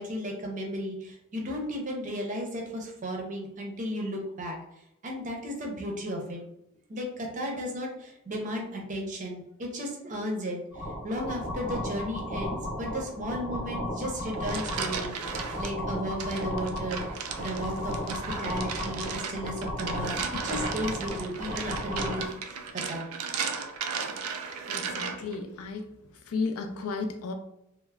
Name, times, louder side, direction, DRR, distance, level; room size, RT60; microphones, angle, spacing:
voice 1, 0.0-4.6 5.0-6.4 6.9-15.1 15.6-17.0 17.4-22.6 22.9-23.0, equal, 35° right, 1 dB, 0.5 m, -34 dB
sound 1, 10.7-22.3, left 1 dB, 25° left, 0.9 m, -35 dB
sound 2, 14.2-15.7 16.2-25.4, right 6 dB, 90° right, 0.3 m, -36 dB
voice 2, 24.7-26.0 26.3-27.3, left 4 dB, 80° left, 4 dB, 0.4 m, -33 dB
3.2 x 2.0 x 2.3 m, 0.83 s
head